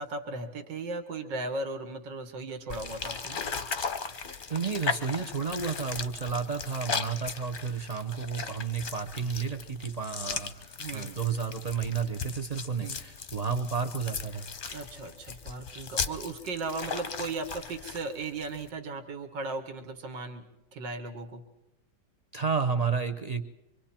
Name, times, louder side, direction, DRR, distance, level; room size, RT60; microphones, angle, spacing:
voice 1, 0.0-3.4 10.8-11.1 12.8-13.0 14.7-20.4 20.7-21.4, right 3 dB, 90° right, 7 dB, 2.1 m, -36 dB
sound 1, 2.7-18.7, left 5 dB, 40° left, 0.8 m, -37 dB
voice 2, 4.5-14.5 22.3-23.4, right 6 dB, 45° right, 6 dB, 0.5 m, -31 dB
25.5 x 24.5 x 4.4 m, 0.93 s
omnidirectional pair, 1.9 m